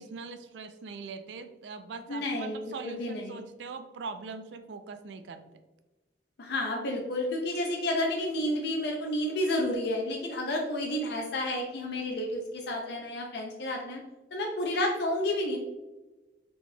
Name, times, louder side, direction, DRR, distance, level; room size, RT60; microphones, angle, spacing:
voice 1, 0.0-5.4, right 4 dB, 75° right, 9 dB, 0.4 m, -41 dB
voice 2, 2.1-2.6 2.8-3.4 6.4-14.0 14.3-15.6, left 1 dB, 65° left, 1 dB, 0.5 m, -30 dB
4.1 x 3.2 x 2.2 m, 1.1 s
head